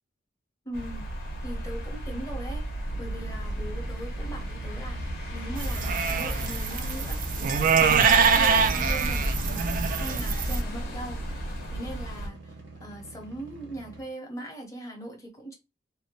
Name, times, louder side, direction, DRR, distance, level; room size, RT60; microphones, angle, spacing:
voice 1, 0.6-1.0 1.4-2.7 3.0-7.6 7.9-12.5 12.8-15.5, right 1 dB, 20° left, 0.8 m, -40 dB
sound 1, 0.7-12.3, equal, 55° left, 0.8 m, -34 dB
sound 2, 2.8-14.0, right 3 dB, 85° right, 1.0 m, -46 dB
sound 3, 5.6-10.6, right 5 dB, 50° right, 0.4 m, -24 dB
2.7 x 2.1 x 2.7 m
head